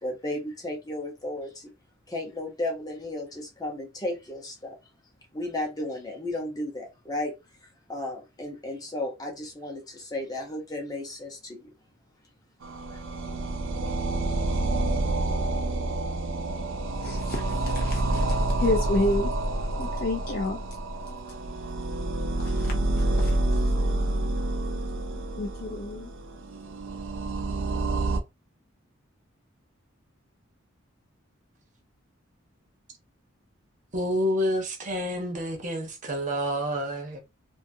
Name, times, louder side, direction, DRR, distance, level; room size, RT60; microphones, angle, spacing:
voice 1, 0.0-1.7 2.1-4.8 5.3-7.3 7.9-11.7 12.9-13.0, left 1 dB, 20° left, 0.7 m, -34 dB
sound 1, 12.6-28.2, right 2 dB, 75° right, 0.5 m, -28 dB
voice 2, 17.0-19.3 19.8-20.6 22.4-23.7 25.1-26.1, left 2 dB, 50° left, 0.4 m, -30 dB
voice 3, 33.9-37.2, equal, 40° right, 0.7 m, -28 dB
2.5 x 2.4 x 2.6 m
head